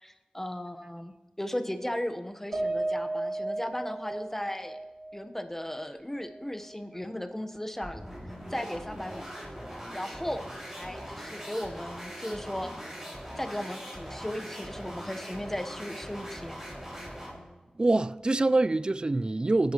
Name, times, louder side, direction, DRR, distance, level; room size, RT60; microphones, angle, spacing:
voice 1, 0.0-4.8 5.1-9.3 9.9-12.8 13.4-16.6, left 1 dB, 15° left, 1.1 m, -36 dB
Piano, 2.5-7.0 7.4-7.5 7.9-8.0, right 2 dB, 75° right, 5.6 m, -35 dB
sound 1, 7.8-17.5, equal, 15° right, 5.6 m, -41 dB
voice 2, 17.8-19.7, right 2 dB, 35° right, 0.4 m, -25 dB
25.0 x 10.5 x 3.1 m
wide cardioid pair, 65°, 3 cm